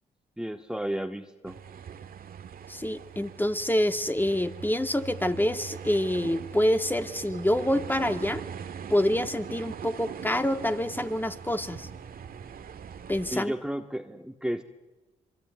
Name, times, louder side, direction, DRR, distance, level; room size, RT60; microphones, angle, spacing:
voice 1, 0.4-1.6 13.3-14.6, right 1 dB, 5° right, 6 dB, 1.8 m, -33 dB
sound 1, 1.5-13.4, right 7 dB, 70° right, 1.8 m, -41 dB
voice 2, 2.7-8.4 8.9-11.9 13.1-13.5, left 1 dB, 10° left, 8 dB, 2.3 m, -27 dB
26.0 x 24.0 x 9.5 m, 1.1 s
supercardioid pair, 45°, 16 cm